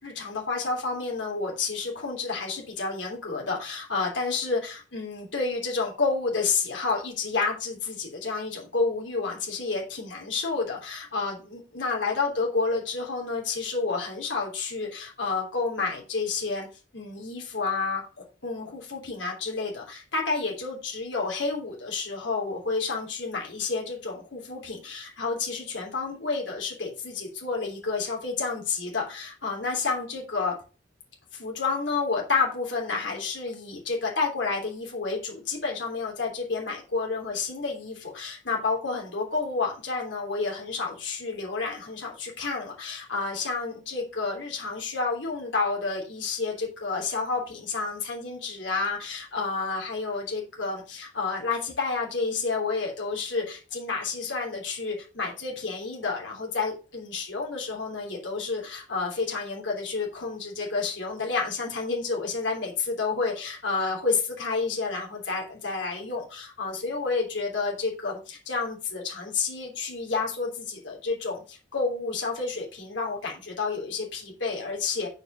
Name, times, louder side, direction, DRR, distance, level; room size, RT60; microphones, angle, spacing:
voice 1, 0.0-16.7 16.9-30.5 31.3-75.1, left 4 dB, 80° left, -1 dB, 3.2 m, -30 dB
6.5 x 5.1 x 6.2 m, 0.33 s
head